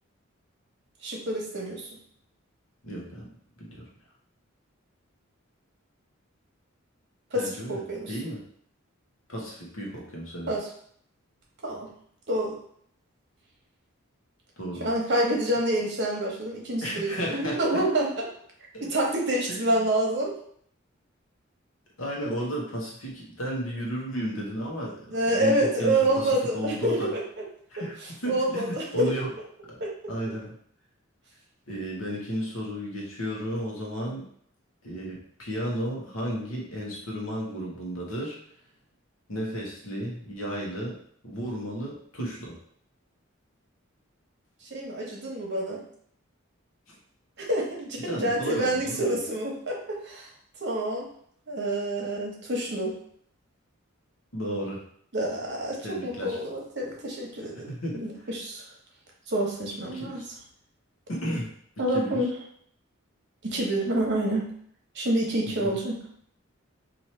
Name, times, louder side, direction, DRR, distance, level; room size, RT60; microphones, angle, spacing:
voice 1, 1.0-1.9 7.3-8.1 10.5-10.7 11.6-11.9 12.3-12.5 14.8-18.2 18.8-20.3 25.1-27.2 27.8-27.9 28.3-29.1 29.8-29.9 44.7-45.8 47.4-50.3 50.6-51.0 51.5-52.9 55.1-58.6 59.3-60.2 61.8-62.4 63.4-64.5 64.9-66.0, right 1 dB, 55° right, -1 dB, 1.0 m, -27 dB
voice 2, 2.8-3.3 3.6-3.8 7.3-7.8 8.1-8.4 9.3-10.5 14.6-14.9 16.8-17.8 18.7-18.8 19.5-19.8 22.0-27.1 27.7-29.3 29.7-29.8 30.1-30.6 31.7-34.3 34.8-38.4 39.3-41.0 41.2-42.6 46.9-47.0 48.0-49.2 54.3-54.8 55.8-56.4 57.7-58.0 59.9-60.2 61.1-61.5 61.9-62.2 65.5-65.8, equal, 80° left, -2 dB, 1.1 m, -33 dB
3.0 x 2.7 x 4.3 m, 0.64 s
head